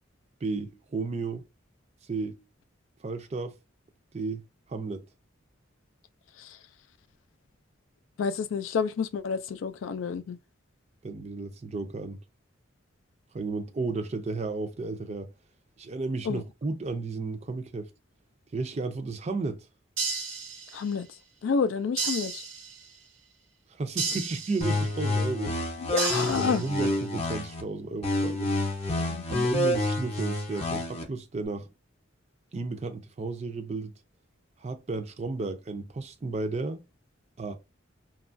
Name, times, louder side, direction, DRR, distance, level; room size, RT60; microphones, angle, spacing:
voice 1, 0.4-1.4 2.1-2.4 3.0-3.5 4.1-4.4 4.7-5.0 11.0-12.2 13.3-15.3 15.8-17.9 18.5-19.7 23.8-25.6 26.4-28.5 29.3-31.7 32.5-33.9 34.6-36.8 37.4-37.6, right 3 dB, 35° right, 0.4 m, -33 dB
voice 2, 8.2-10.4 16.2-16.4 20.7-21.1 21.4-22.4 25.8-26.6 29.1-29.4, left 5 dB, 75° left, 0.3 m, -29 dB
sound 1, 20.0-21.0 22.0-23.0 24.0-25.0 26.0-27.0, right 5 dB, 75° right, 0.6 m, -34 dB
sound 2, 24.6-27.6 28.0-31.0, left 1 dB, 30° left, 0.6 m, -28 dB
2.8 x 2.3 x 2.5 m
head